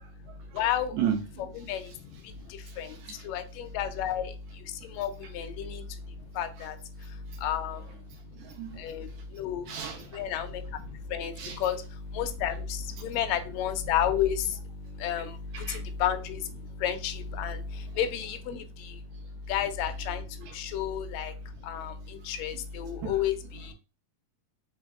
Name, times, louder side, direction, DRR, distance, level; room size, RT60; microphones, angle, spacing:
voice 1, 0.4-1.0 1.4-23.7, left 9 dB, 80° left, 1.6 m, -32 dB
voice 2, 0.9-1.5 2.9-3.2 8.4-8.8 9.7-10.1 11.4-11.6 15.5-15.8 20.5-20.6 22.9-23.1, right 8 dB, 70° right, 2.0 m, -34 dB
4.7 x 3.4 x 2.4 m
omnidirectional pair, 3.6 m